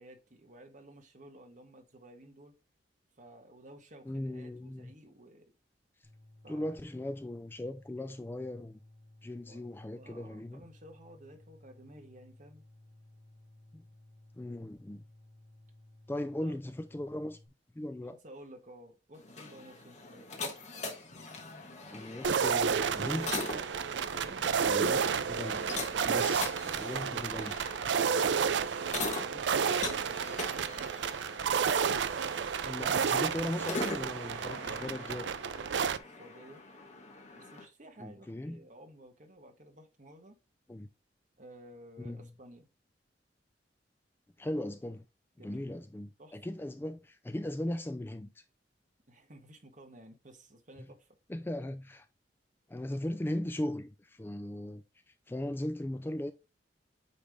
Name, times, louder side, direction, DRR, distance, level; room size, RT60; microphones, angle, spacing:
voice 1, 0.0-2.5 3.2-5.5 6.4-6.8 9.5-9.7 9.9-12.6 16.4-16.6 18.1-20.3 24.1-24.5 28.9-31.0 34.7-35.3 35.5-36.6 37.3-40.4 41.4-42.7 45.4-45.7 46.2-46.4 49.1-51.1, right 1 dB, 45° right, 1.6 m, -53 dB
voice 2, 4.1-4.9 6.5-8.8 9.2-10.6 13.7-13.8 14.3-15.0 16.1-17.4 17.7-18.2 21.9-23.5 24.6-25.0 25.3-25.8 26.0-27.5 32.6-35.3 38.0-38.6 40.7-40.9 42.0-42.3 44.4-45.0 45.4-48.4 50.8-50.9 51.3-52.1 52.7-54.8 55.3-56.3, left 1 dB, 10° left, 0.4 m, -38 dB
sound 1, 6.0-17.5, left 1 dB, 20° right, 1.6 m, -58 dB
sound 2, 19.1-37.6, left 3 dB, 40° left, 1.3 m, -43 dB
sound 3, 22.2-36.0, right 6 dB, 85° right, 0.5 m, -31 dB
8.5 x 3.4 x 3.6 m
head